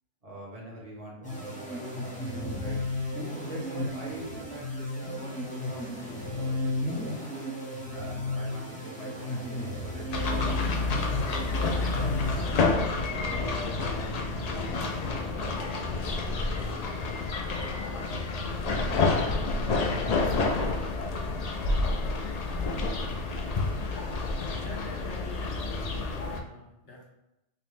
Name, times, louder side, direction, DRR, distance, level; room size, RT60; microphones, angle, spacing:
voice 1, 0.2-2.8 3.4-5.9 6.3-7.2 7.9-10.6 11.4-15.6 19.6-20.4, right 1 dB, 30° right, -3 dB, 1.1 m, -44 dB
sound 1, 1.2-13.0, left 1 dB, 10° left, 0.5 m, -34 dB
sound 2, 10.1-26.4, left 3 dB, 85° left, 0.3 m, -29 dB
voice 2, 24.5-27.1, left 2 dB, 70° left, -3 dB, 1.4 m, -44 dB
5.5 x 2.1 x 3.2 m, 0.89 s
omnidirectional pair, 1.3 m